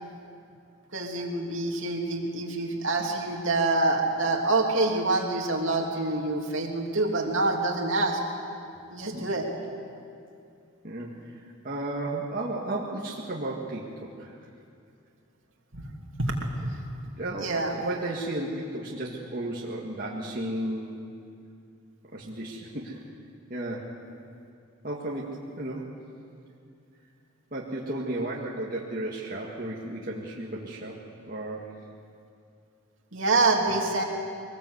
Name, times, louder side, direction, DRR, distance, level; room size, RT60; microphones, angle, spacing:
voice 1, 0.9-8.2 8.9-9.5 15.7-16.7 17.4-17.8 33.1-34.0, right 2 dB, 60° right, 1 dB, 2.9 m, -26 dB
voice 2, 10.8-11.4 11.6-14.4 17.2-21.0 22.1-23.0 23.5-23.9 24.8-25.9 27.5-31.0 31.3-31.7, right 1 dB, 40° right, -4 dB, 2.0 m, -34 dB
23.0 x 20.0 x 8.1 m, 2.5 s
head